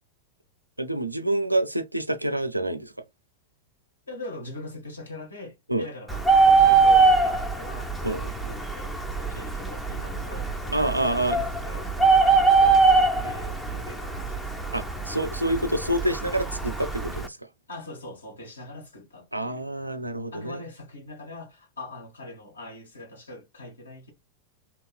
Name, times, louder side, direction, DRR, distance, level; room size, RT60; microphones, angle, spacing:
voice 1, 0.8-2.9 5.7-5.8 8.0-8.2 10.7-11.4 14.7-17.4 19.3-20.6, right 1 dB, 85° right, 0.4 m, -27 dB
voice 2, 4.1-6.2 6.5-14.7 17.7-19.6 20.3-24.1, left 1 dB, 75° left, 1.2 m, -42 dB
Bird, 6.1-17.3, right 4 dB, ahead, 0.5 m, -22 dB
2.9 x 2.9 x 2.2 m
figure-of-eight pair, 90°, 0 cm